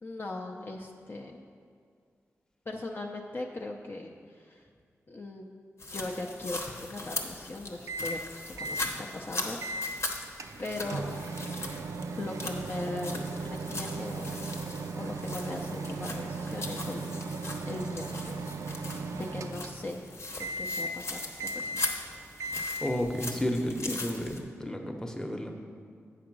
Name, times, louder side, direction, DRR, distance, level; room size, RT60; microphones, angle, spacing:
voice 1, 0.0-1.4 2.7-4.6 5.1-5.5 5.9-9.9 10.6-11.1 12.2-14.5 14.9-17.2 17.6-18.4 18.7-20.0 20.4-21.8, left 2 dB, 40° left, 1 dB, 0.5 m, -39 dB
sound 1, 5.8-24.4, left 2 dB, 55° left, 1.0 m, -40 dB
Microwave oven, 7.9-8.3 8.6-8.9 9.6-10.0 10.4-20.0 20.4-21.0 21.4-22.0 22.4-23.0, right 2 dB, 85° right, 0.4 m, -37 dB
voice 2, 22.8-25.5, equal, 10° left, 3 dB, 0.9 m, -32 dB
8.5 x 5.0 x 6.1 m, 2.1 s
wide cardioid pair, 80°, 5 cm